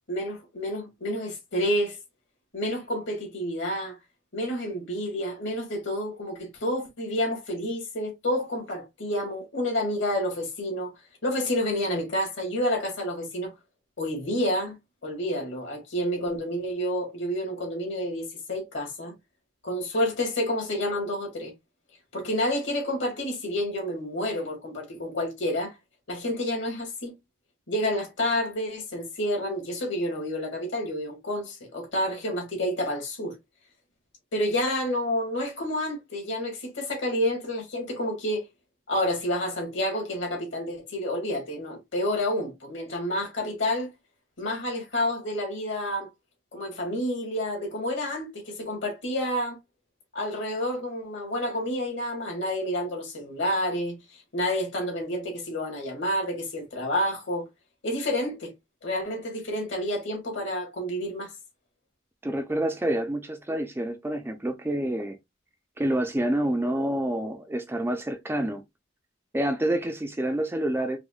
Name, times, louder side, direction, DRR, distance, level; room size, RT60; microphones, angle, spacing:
voice 1, 0.1-2.0 2.5-4.0 4.3-10.9 11.2-13.5 14.0-14.8 15.0-19.1 19.6-21.5 22.1-25.7 26.1-27.1 27.7-33.4 34.3-38.5 38.9-43.9 44.4-46.1 46.5-49.6 50.1-53.9 54.3-57.5 57.8-58.5 58.8-61.3, left 1 dB, 65° left, 1.8 m, -29 dB
voice 2, 62.2-65.2 65.8-68.6 69.3-71.0, right 1 dB, 10° right, 0.4 m, -28 dB
4.8 x 2.1 x 2.3 m
head